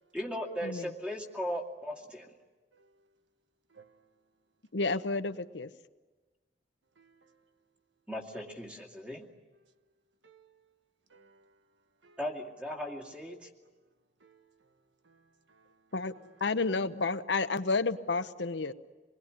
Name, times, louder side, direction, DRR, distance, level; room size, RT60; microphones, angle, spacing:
voice 1, 0.1-2.3 8.1-9.3 12.2-13.5, equal, 5° right, 2.4 m, -37 dB
voice 2, 2.7-3.0 3.7-4.1 7.0-7.5 9.6-9.7 10.2-10.7 11.1-11.6 12.0-12.2 14.2-14.7 15.0-16.4, right 5 dB, 85° right, 1.3 m, -63 dB
voice 3, 4.7-5.7 15.9-16.1 16.4-18.7, left 3 dB, 75° left, 0.9 m, -30 dB
27.0 x 21.0 x 9.9 m
head